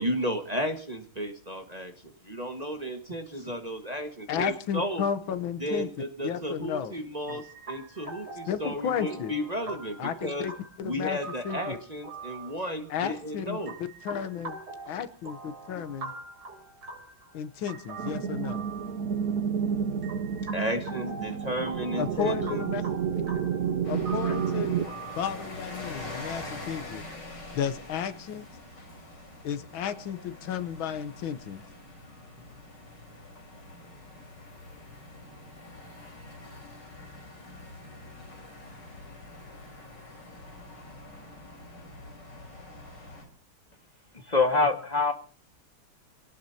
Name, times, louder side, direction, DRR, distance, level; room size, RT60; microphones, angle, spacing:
voice 1, 0.0-5.0 5.6-10.5 10.8-13.7 20.5-22.6, equal, 20° right, 4 dB, 1.5 m, -33 dB
voice 2, 4.3-5.9 6.2-6.9 7.3-7.4 8.5-9.4 10.0-11.2 11.4-11.8 12.9-13.6 14.0-14.6 14.9-16.1 17.3-18.7 22.0-22.8 23.1-23.4 23.9-24.8 25.2-27.0 27.5-28.5 29.4-31.6, left 8 dB, 75° left, 12 dB, 1.7 m, -33 dB
sound 1, 7.3-26.5, right 3 dB, 80° right, 4.1 m, -45 dB
sound 2, 18.0-24.9, right 7 dB, 55° right, 1.2 m, -30 dB
sound 3, 23.8-43.2, left 2 dB, 55° left, 5.0 m, -45 dB
voice 3, 44.3-45.1, left 3 dB, 20° left, 6 dB, 1.4 m, -23 dB
28.0 x 18.0 x 2.8 m, 0.37 s
omnidirectional pair, 2.3 m